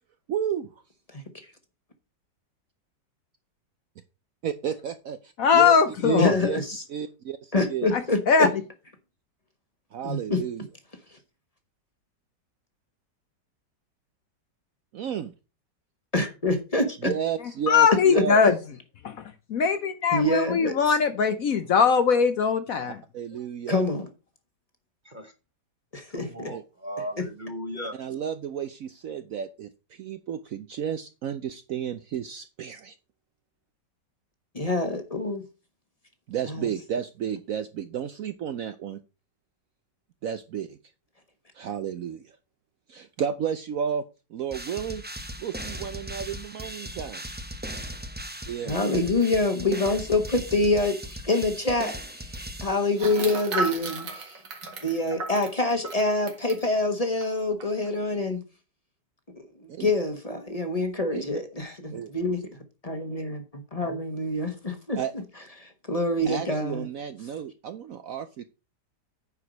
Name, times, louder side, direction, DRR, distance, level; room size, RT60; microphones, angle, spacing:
voice 1, 0.3-0.7 4.4-5.7 6.0-6.6 6.9-8.0 9.9-10.7 14.9-15.3 17.0-18.4 22.8-23.8 26.4-26.6 27.9-33.0 36.3-39.0 40.2-40.8 41.5-42.2 42.9-44.0 44.3-45.0 45.4-47.2 48.5-48.8 59.7-59.9 61.1-61.4 61.9-62.1 65.0-65.1 66.3-68.4, right 8 dB, 65° right, 0.9 m, -32 dB
voice 2, 5.4-6.3 7.9-8.0 8.3-8.5 17.7-18.5 19.0-19.2 19.5-23.0, left 6 dB, 60° left, 1.0 m, -21 dB
voice 3, 6.0-6.8 7.5-8.5 10.0-10.4 16.1-17.1 17.9-18.5 20.1-21.0 23.7-24.1 25.9-26.5 34.5-35.4 36.5-36.7 48.7-51.9 52.3-54.4 54.8-58.4 59.4-62.4 62.8-65.0 65.6-66.9, left 2 dB, 25° left, 1.2 m, -26 dB
voice 4, 26.1-28.0, equal, 30° right, 1.0 m, -36 dB
sound 1, 44.5-53.3, right 1 dB, 10° right, 0.5 m, -38 dB
sound 2, 51.1-51.2 51.4-51.5 52.9-56.6 57.2-57.3 57.6-57.9, right 3 dB, 85° right, 2.4 m, -34 dB
9.6 x 4.8 x 5.2 m
omnidirectional pair, 1.9 m